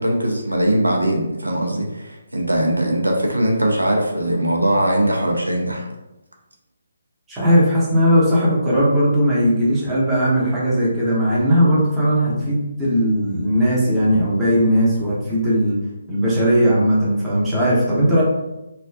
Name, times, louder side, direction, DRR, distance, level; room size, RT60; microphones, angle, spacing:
voice 1, 0.0-5.9, right 1 dB, 80° right, 0 dB, 0.5 m, -20 dB
voice 2, 7.3-15.8 16.1-18.2, equal, 10° right, -9 dB, 0.8 m, -18 dB
3.2 x 2.2 x 2.4 m, 0.96 s
figure-of-eight pair, 140°, 0 cm